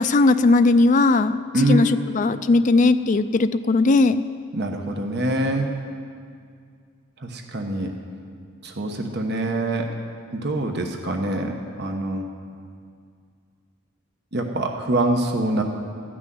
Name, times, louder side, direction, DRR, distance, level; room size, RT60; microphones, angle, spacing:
voice 1, 0.0-1.4 1.7-4.2, left 3 dB, 40° left, 12 dB, 0.4 m, -18 dB
voice 2, 1.5-1.9 2.2-2.3 4.5-5.7 7.2-7.9 8.6-9.9 10.3-12.2 14.3-15.6, right 1 dB, 55° right, 3 dB, 1.0 m, -24 dB
14.0 x 6.3 x 9.2 m, 2.2 s
head